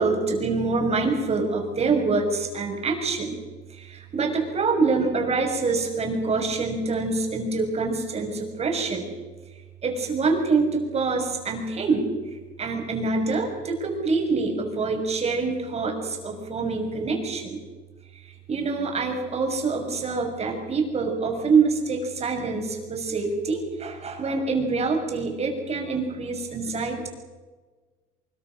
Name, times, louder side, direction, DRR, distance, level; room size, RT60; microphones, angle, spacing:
voice 1, 0.0-3.4 3.7-9.1 9.8-12.1 12.6-17.6 18.5-27.1, right 4 dB, 40° right, 3 dB, 6.4 m, -25 dB
24.0 x 22.5 x 6.4 m, 1.3 s
cardioid pair, 110°, 17 cm